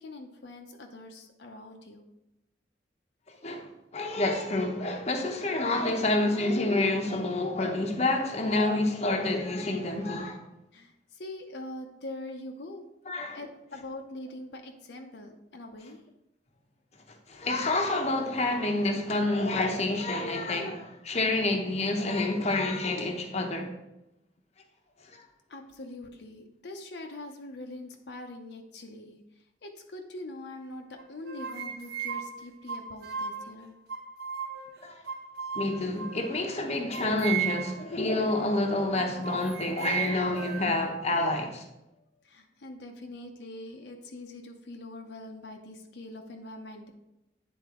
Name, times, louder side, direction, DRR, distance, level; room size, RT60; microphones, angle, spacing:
voice 1, 0.0-2.0 10.7-12.8 13.3-16.0 25.5-33.7 41.9-46.9, left 1 dB, 65° left, 0.7 m, -43 dB
voice 2, 3.4-10.4 13.1-13.4 17.3-23.7 34.8-35.0 35.5-41.6, left 2 dB, 35° left, 0.7 m, -28 dB
sound 1, 31.0-33.5 33.9-34.8 35.1-36.4 36.9-37.8 38.3-38.5 39.0-40.8, right 8 dB, 60° right, 0.8 m, -35 dB
9.3 x 3.9 x 3.7 m
head